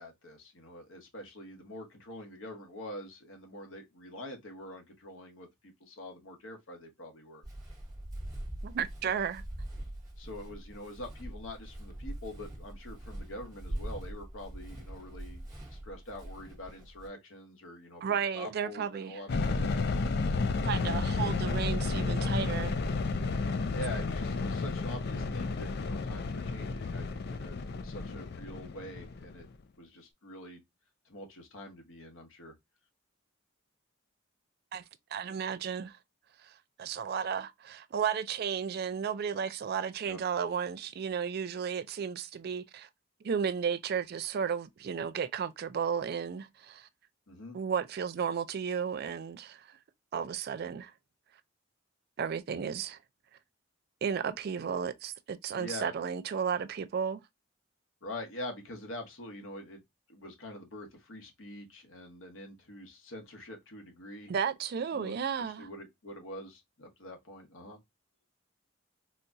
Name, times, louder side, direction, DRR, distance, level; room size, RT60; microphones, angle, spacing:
voice 1, 0.0-7.4 10.2-15.4 15.7-19.4 21.2-21.4 23.7-29.5 29.8-30.6 31.0-32.5 40.1-40.2 47.3-47.6 55.5-55.9 58.0-59.8 60.1-64.3 64.9-67.8, left 1 dB, 75° left, 1.1 m, -45 dB
Walk footsteps, 7.4-17.1, right 1 dB, 20° right, 1.1 m, -42 dB
voice 2, 8.6-9.4 18.0-19.2 20.6-22.8 34.7-34.8 35.1-36.0 36.4-42.9 43.2-46.9 47.5-49.7 50.1-50.9 52.2-53.0 54.0-57.2 64.3-65.7, right 7 dB, 50° right, 0.3 m, -33 dB
sound 1, 19.3-29.5, left 3 dB, 55° left, 0.4 m, -32 dB
4.1 x 2.3 x 2.5 m
head